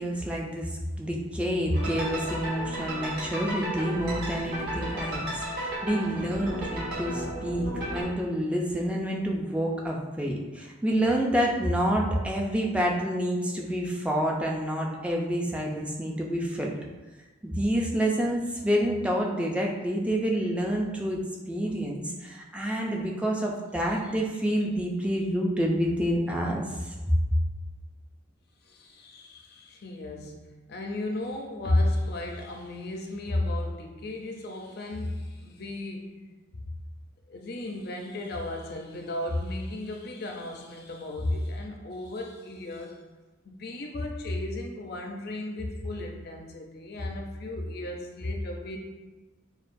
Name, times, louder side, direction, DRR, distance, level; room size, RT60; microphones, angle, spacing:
voice 1, 0.0-16.8 17.4-21.2 21.5-26.9, equal, 5° right, -1 dB, 0.4 m, -28 dB
sound 1, 1.7-8.0, right 1 dB, 50° right, 1.4 m, -34 dB
voice 2, 28.7-36.1 37.3-43.0 43.5-48.8, left 1 dB, 50° left, 2 dB, 0.5 m, -33 dB
6.4 x 2.3 x 2.6 m, 1.2 s
head